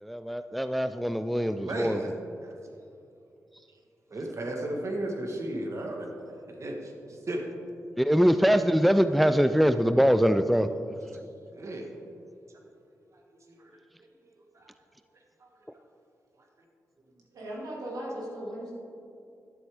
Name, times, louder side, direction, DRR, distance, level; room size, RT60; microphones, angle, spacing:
voice 1, 0.0-2.0 8.0-10.7, equal, ahead, 11 dB, 0.3 m, -23 dB
voice 2, 1.4-2.1 2.4-2.5 4.1-7.5 11.5-11.9 12.5-12.6 13.1-14.7 15.1-15.5, right 1 dB, 50° right, 1 dB, 1.5 m, -36 dB
voice 3, 17.3-18.7, equal, 80° right, -4 dB, 2.5 m, -37 dB
12.5 x 7.8 x 3.6 m, 2.6 s
cardioid pair, 60°, 6 cm